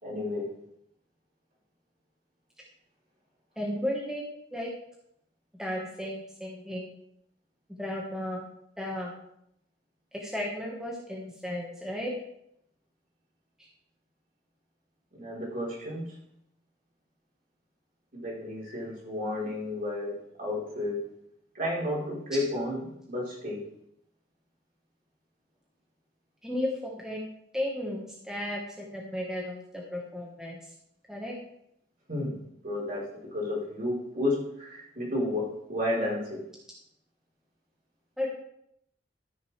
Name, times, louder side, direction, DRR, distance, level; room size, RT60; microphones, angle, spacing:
voice 1, 0.0-0.5 15.1-16.2 18.1-21.0 21.5-23.6 32.1-36.4, left 1 dB, 50° right, -5 dB, 3.9 m, -32 dB
voice 2, 3.6-4.7 5.6-6.9 7.8-8.5 8.8-9.1 10.1-12.1 26.4-27.2 27.5-30.6 31.1-31.3 38.2-38.3, left 1 dB, 5° right, -3 dB, 1.4 m, -34 dB
13.0 x 6.7 x 3.3 m, 0.75 s
head